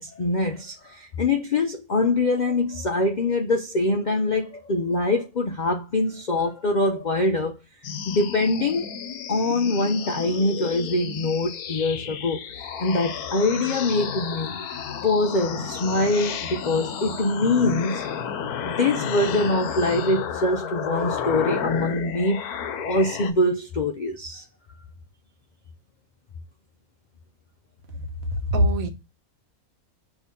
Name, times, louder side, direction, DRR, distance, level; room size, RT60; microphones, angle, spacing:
voice 1, 0.0-7.6 8.1-8.9 9.3-12.4 12.8-14.5 15.0-18.0 18.6-22.4 22.8-24.4, left 2 dB, 55° left, 0.5 m, -24 dB
sound 1, 7.8-23.3, left 7 dB, 90° left, 1.3 m, -32 dB
voice 2, 28.3-28.9, equal, 70° right, 1.4 m, -22 dB
6.4 x 3.0 x 5.2 m
omnidirectional pair, 1.6 m